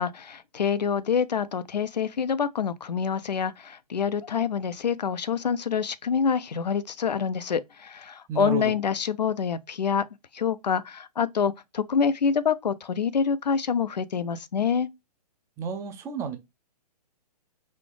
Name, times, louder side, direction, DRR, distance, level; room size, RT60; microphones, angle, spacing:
voice 1, 0.0-10.1 10.3-14.9, left 6 dB, 85° left, 0.5 m, -26 dB
voice 2, 8.3-8.6 15.6-16.4, right 5 dB, 15° right, 0.5 m, -31 dB
4.1 x 2.4 x 3.2 m
figure-of-eight pair, 125°, 21 cm